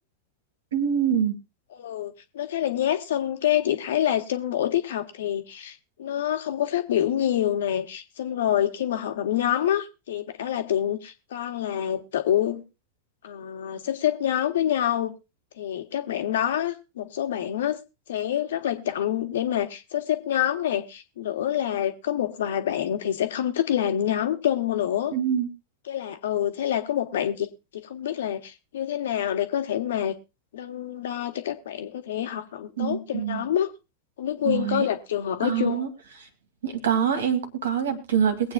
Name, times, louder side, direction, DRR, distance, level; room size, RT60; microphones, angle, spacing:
voice 1, 0.7-1.4 25.1-25.5 32.8-33.4 34.5-34.9 35.4-35.9 36.6-38.5, right 8 dB, 65° right, 1.8 m, -25 dB
voice 2, 1.7-12.6 13.2-15.1 15.6-17.8 18.1-25.2 25.9-27.5 27.7-30.1 30.5-33.7 34.2-35.8, left 11 dB, 60° left, 1.3 m, -27 dB
22.5 x 8.5 x 2.4 m
figure-of-eight pair, 90°, 0 cm